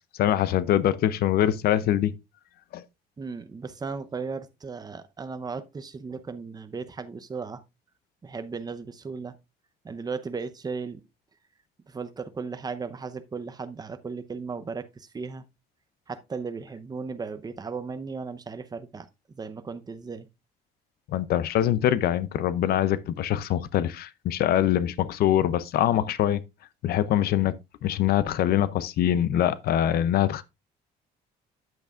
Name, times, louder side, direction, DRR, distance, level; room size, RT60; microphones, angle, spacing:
voice 1, 0.2-2.1 2.7-2.8 21.1-26.4 26.8-27.5 27.8-30.4, left 11 dB, 65° left, 0.6 m, -24 dB
voice 2, 3.2-7.6 8.2-9.3 9.8-11.0 11.9-15.4 16.1-20.3, right 4 dB, 25° right, 0.8 m, -36 dB
9.3 x 8.1 x 2.4 m
cardioid pair, 110°, 17 cm